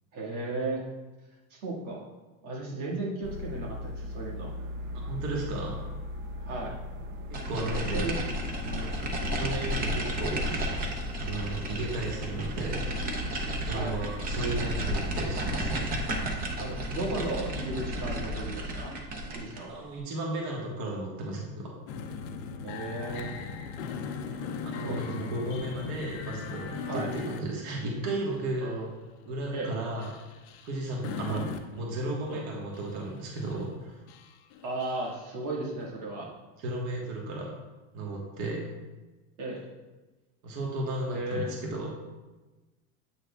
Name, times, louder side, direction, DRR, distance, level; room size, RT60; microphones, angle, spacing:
voice 1, 0.1-0.8 1.5-2.1 2.4-4.6 6.4-6.7 7.7-8.2 8.6-9.0 13.7-14.0 16.6-18.9 19.3-19.8 22.6-23.3 24.8-25.1 26.9-27.1 28.6-28.9 29.5-29.7 31.3-31.4 32.3-32.4 34.6-36.3 39.4-39.7 41.1-41.5, right 2 dB, 90° right, -4 dB, 1.9 m, -35 dB
sound 1, 3.2-17.5, left 1 dB, 60° right, 0.9 m, -39 dB
voice 2, 4.9-5.8 7.3-8.0 9.3-10.8 11.2-12.8 13.6-15.9 19.7-21.7 24.6-28.7 29.2-30.1 30.6-31.5 31.7-34.0 36.2-36.3 36.6-37.5 37.9-38.7 40.4-41.9, right 2 dB, 40° right, -2 dB, 1.3 m, -34 dB
sound 2, 7.3-19.7, equal, 20° right, 0.6 m, -33 dB
sound 3, 21.9-27.9 28.3-28.5 28.9-29.1 30.0-31.8 32.3-32.4 32.7-33.0 33.4-33.8 34.1-35.2, left 6 dB, 40° left, 0.5 m, -38 dB
8.2 x 6.0 x 2.3 m, 1.2 s
supercardioid pair, 155°, 42 cm